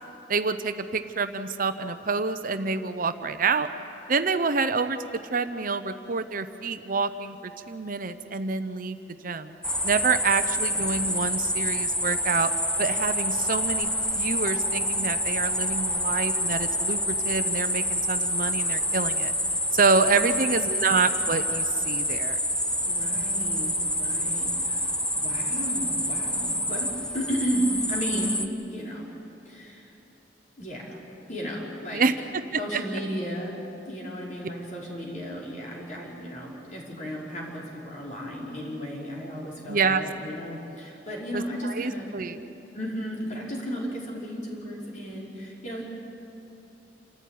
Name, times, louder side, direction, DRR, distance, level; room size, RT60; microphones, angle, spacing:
voice 1, 0.3-3.7 4.1-5.0 5.3-9.0 9.2-9.5 9.8-12.5 12.8-13.9 14.1-19.3 19.7-22.4 31.9-32.8 39.7-40.0 41.3-42.5, right 4 dB, 50° right, 10 dB, 0.8 m, -27 dB
sound 1, 9.6-28.5, equal, 5° left, 0.8 m, -27 dB
voice 2, 22.8-28.4 28.7-29.1 29.4-29.9 30.6-31.0 31.3-32.1 32.6-33.5 33.9-42.1 42.7-45.8, equal, 45° left, -4 dB, 5.2 m, -34 dB
28.0 x 14.0 x 9.3 m, 3.0 s
head